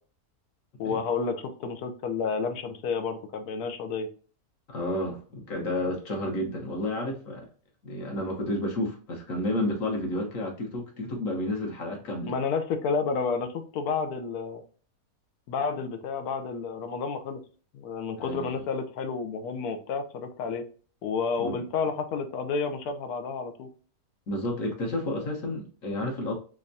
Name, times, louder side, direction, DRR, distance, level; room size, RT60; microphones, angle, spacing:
voice 1, 0.8-4.1 12.3-14.6 15.5-17.4 17.7-20.6 21.0-23.7, left 5 dB, 90° left, 7 dB, 1.2 m, -30 dB
voice 2, 4.7-7.5 7.8-12.3 18.2-18.6 21.4-21.6 24.3-26.3, left 1 dB, 65° left, 0 dB, 1.4 m, -31 dB
3.6 x 3.3 x 2.6 m, 0.39 s
omnidirectional pair, 1.6 m